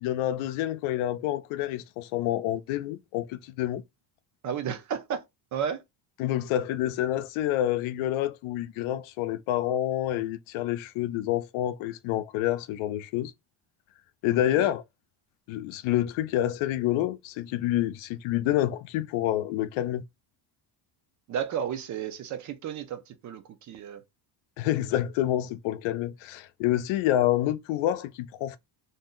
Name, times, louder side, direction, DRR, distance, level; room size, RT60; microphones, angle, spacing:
voice 1, 0.0-3.8 6.2-13.3 14.2-14.8 15.5-20.0 24.6-28.6, left 13 dB, 90° left, 0.6 m, -28 dB
voice 2, 4.4-5.2 5.5-5.8 14.3-14.7 21.3-24.0, right 8 dB, 40° right, 0.4 m, -33 dB
2.6 x 2.1 x 3.6 m
cardioid pair, 175°, 46 cm